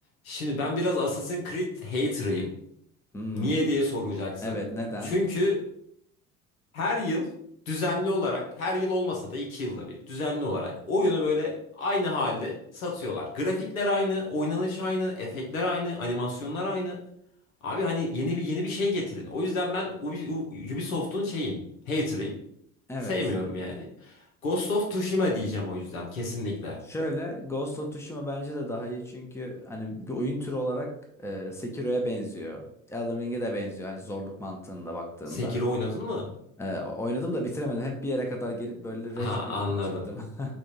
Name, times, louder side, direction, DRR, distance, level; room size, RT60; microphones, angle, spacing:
voice 1, 0.2-2.5 3.3-4.6 5.0-5.6 6.7-7.3 7.7-17.0 17.6-21.6 21.9-22.3 23.0-24.2 24.4-26.8 35.3-36.2 39.2-40.1, left 2 dB, 75° left, -1 dB, 1.2 m, -29 dB
voice 2, 3.1-3.7 4.4-5.1 22.9-23.1 26.8-30.9 31.2-35.6 36.6-39.5 40.1-40.6, equal, 5° left, 2 dB, 0.8 m, -33 dB
6.0 x 2.6 x 3.0 m, 0.71 s
figure-of-eight pair, 65°, 42 cm